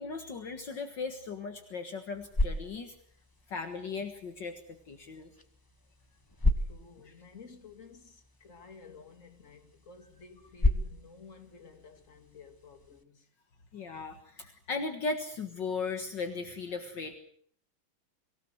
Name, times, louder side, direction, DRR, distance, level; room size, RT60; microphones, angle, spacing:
voice 1, 0.0-2.9 3.5-5.3 13.7-17.2, left 4 dB, 60° left, 2.3 m, -37 dB
sound 1, 1.9-13.0, left 2 dB, 15° left, 1.1 m, -35 dB
voice 2, 6.6-13.3 13.7-13.8 14.1-14.2, left 5 dB, 35° left, 2.7 m, -53 dB
24.5 x 18.0 x 7.9 m
omnidirectional pair, 2.3 m